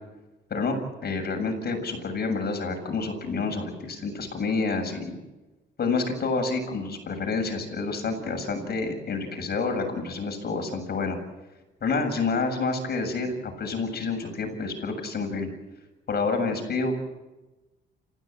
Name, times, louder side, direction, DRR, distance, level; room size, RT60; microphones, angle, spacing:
voice 1, 0.5-5.2 5.8-11.2 11.8-15.5 16.1-17.0, left 4 dB, 55° left, 5 dB, 7.4 m, -28 dB
28.5 x 16.0 x 8.0 m, 1.1 s
cardioid pair, 90°, 20 cm